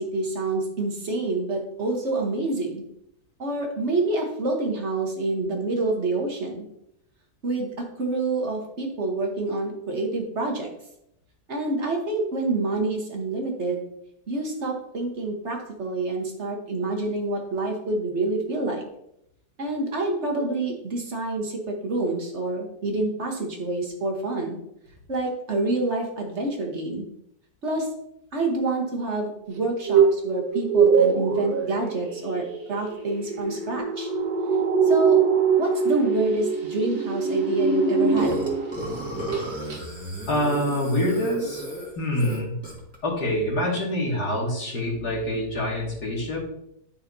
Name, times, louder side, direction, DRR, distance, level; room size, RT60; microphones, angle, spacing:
voice 1, 0.0-2.8 3.4-6.6 7.4-10.7 11.5-13.8 14.3-18.8 19.6-24.6 25.1-27.1 27.6-27.9 28.3-34.1 34.8-35.2 35.6-38.4, right 2 dB, 50° right, 1 dB, 1.4 m, -27 dB
sound 1, 29.6-38.8 39.1-39.4 39.7-39.8, right 6 dB, 80° right, 1.7 m, -23 dB
Burping eructation, 38.2-43.0, right 1 dB, 10° right, 1.8 m, -33 dB
voice 2, 40.3-41.6 42.0-42.5 43.0-46.4, left 1 dB, 80° left, -4 dB, 2.7 m, -26 dB
10.0 x 5.7 x 2.7 m, 0.77 s
omnidirectional pair, 1.7 m